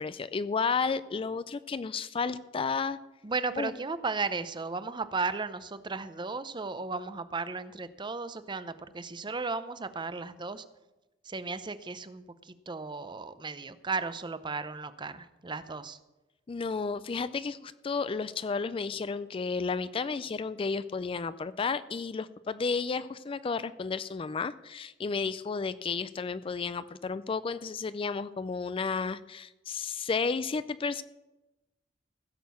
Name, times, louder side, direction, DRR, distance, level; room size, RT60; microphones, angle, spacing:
voice 1, 0.0-3.0 3.6-3.7 16.5-31.0, left 5 dB, 30° left, 15 dB, 0.4 m, -32 dB
voice 2, 3.2-10.6 11.2-16.0, right 4 dB, 25° right, 13 dB, 0.6 m, -35 dB
15.5 x 6.6 x 6.9 m, 1.0 s
head